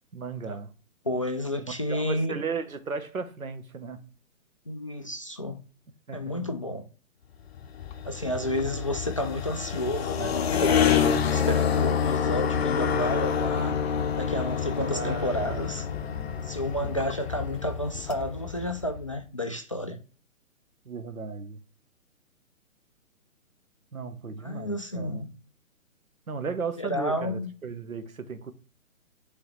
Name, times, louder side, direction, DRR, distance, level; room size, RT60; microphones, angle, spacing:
voice 1, 0.1-0.7 1.9-4.0 6.1-6.3 14.8-16.4 16.8-17.0 20.8-21.6 23.9-25.2 26.3-28.5, right 5 dB, 80° right, 1.2 m, -36 dB
voice 2, 1.0-2.4 4.7-5.6 6.1-6.9 8.1-13.8 14.2-15.8 16.4-20.0 24.4-25.3 26.8-27.5, left 1 dB, 25° left, 0.3 m, -31 dB
sound 1, 7.5-19.1, left 7 dB, 50° left, 0.8 m, -28 dB
8.4 x 3.9 x 3.2 m
figure-of-eight pair, 130°, 41 cm